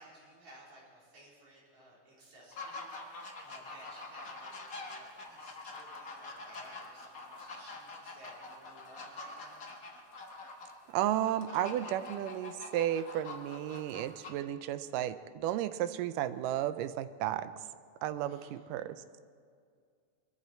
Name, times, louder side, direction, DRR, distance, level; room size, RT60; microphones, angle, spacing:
voice 1, 0.0-2.9 3.4-9.6 18.3-18.6, right 1 dB, 55° right, -6 dB, 5.2 m, -57 dB
sound 1, 2.5-14.3, left 3 dB, 50° left, 1.0 m, -45 dB
voice 2, 10.9-17.5 18.0-19.0, right 12 dB, 80° right, 13 dB, 2.1 m, -33 dB
23.0 x 13.5 x 4.4 m, 2.2 s
omnidirectional pair, 3.9 m